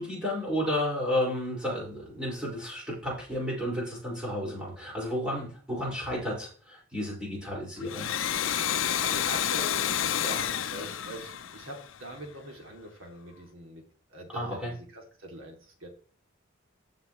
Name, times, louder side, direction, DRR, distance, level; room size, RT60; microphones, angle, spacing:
voice 1, 0.0-8.1 14.3-14.7, equal, 5° right, -4 dB, 5.0 m, -32 dB
Domestic sounds home sounds, 7.8-12.3, left 10 dB, 75° left, 0.6 m, -30 dB
voice 2, 9.0-13.8 14.1-15.9, right 1 dB, 85° right, 1 dB, 2.6 m, -43 dB
14.5 x 5.8 x 3.1 m, 0.43 s
head